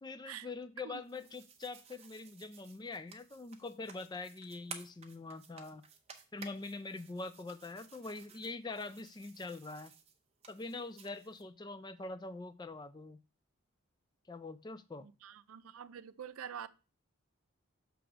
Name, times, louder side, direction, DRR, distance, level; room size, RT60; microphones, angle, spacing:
voice 1, 0.0-5.8 6.3-9.9 10.5-13.2 14.3-15.1, left 3 dB, 20° left, 0.3 m, -44 dB
sound 1, 0.9-11.4, right 6 dB, 30° right, 0.7 m, -55 dB
voice 2, 15.0-16.7, right 8 dB, 90° right, 0.4 m, -46 dB
6.4 x 3.4 x 6.0 m
head